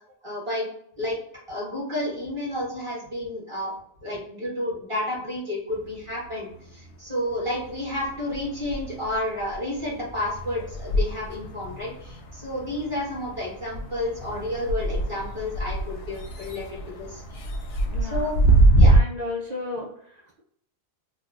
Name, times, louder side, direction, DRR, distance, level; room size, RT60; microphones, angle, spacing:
voice 1, 0.2-0.6 1.0-1.2 1.5-3.7 4.0-17.4 18.0-18.4 18.8-18.9, left 1 dB, 25° right, -6 dB, 1.3 m, -31 dB
sound 1, 5.7-6.9 7.3-19.0, right 1 dB, 60° left, 0.7 m, -25 dB
voice 2, 17.8-18.3 18.8-20.4, left 2 dB, 75° right, -3 dB, 0.3 m, -34 dB
3.5 x 2.2 x 2.4 m, 0.68 s
omnidirectional pair, 1.4 m